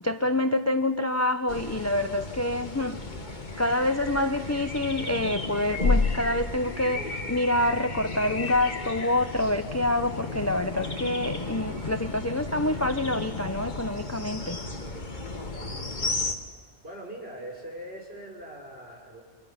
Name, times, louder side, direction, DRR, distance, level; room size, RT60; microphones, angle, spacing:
voice 1, 0.0-3.0 3.6-14.6, left 1 dB, 20° left, 9 dB, 0.5 m, -27 dB
sound 1, 1.5-16.3, left 3 dB, 40° left, 1.8 m, -33 dB
voice 2, 15.5-16.2 16.8-19.2, right 1 dB, 55° right, -1 dB, 6.1 m, -42 dB
29.0 x 25.5 x 5.8 m, 1.5 s
omnidirectional pair, 1.2 m